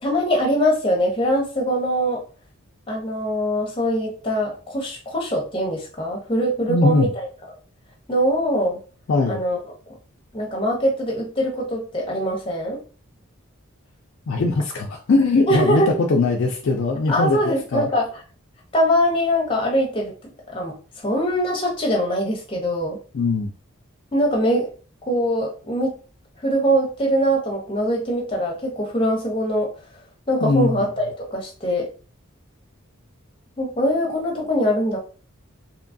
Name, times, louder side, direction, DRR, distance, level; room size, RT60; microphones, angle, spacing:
voice 1, 0.0-2.2 2.9-7.3 8.1-8.8 9.3-9.6 10.3-12.8 15.5-15.9 17.1-18.1 18.7-20.1 20.5-23.0 24.1-24.7 25.1-25.9 26.4-29.7 30.3-31.9 33.6-35.0, equal, 25° left, -1 dB, 0.7 m, -22 dB
voice 2, 6.7-7.1 9.1-9.4 14.3-17.9 23.1-23.5 30.4-30.8, left 3 dB, 60° left, 1 dB, 0.3 m, -20 dB
2.8 x 2.2 x 2.6 m, 0.38 s
head